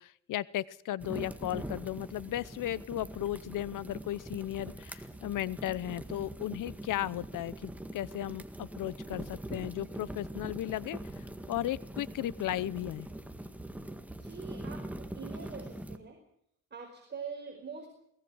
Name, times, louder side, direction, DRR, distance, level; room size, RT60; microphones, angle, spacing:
voice 1, 0.0-13.1, left 13 dB, 75° left, 20 dB, 0.8 m, -35 dB
sound 1, 1.0-16.0, right 1 dB, 5° right, 1.8 m, -43 dB
voice 2, 14.2-16.2 16.7-17.9, right 5 dB, 35° right, 1 dB, 4.6 m, -44 dB
23.0 x 19.0 x 6.3 m, 0.72 s
cardioid pair, 120°, 32 cm